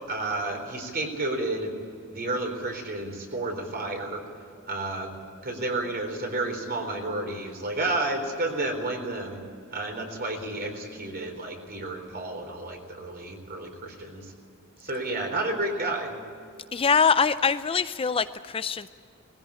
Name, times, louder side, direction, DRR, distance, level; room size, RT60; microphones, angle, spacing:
voice 1, 0.1-1.7 2.1-4.2 4.7-5.2 5.4-9.4 9.7-14.3 14.8-16.1, right 2 dB, 45° right, 3 dB, 4.1 m, -31 dB
voice 2, 16.7-18.9, left 5 dB, 25° left, 12 dB, 0.4 m, -23 dB
20.5 x 16.0 x 9.9 m, 2.4 s
head